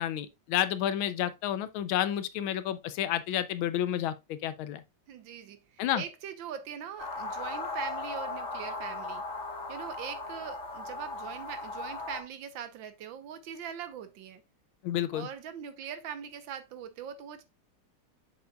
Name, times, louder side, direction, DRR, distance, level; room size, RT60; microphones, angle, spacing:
voice 1, 0.0-4.8 5.8-6.0 14.8-15.3, left 11 dB, 85° left, 1.5 m, -30 dB
voice 2, 5.1-9.2 9.7-14.4 15.1-17.4, right 8 dB, 75° right, 1.5 m, -42 dB
sound 1, 7.0-12.2, left 2 dB, 35° left, 3.0 m, -37 dB
6.8 x 6.7 x 2.3 m
omnidirectional pair, 2.2 m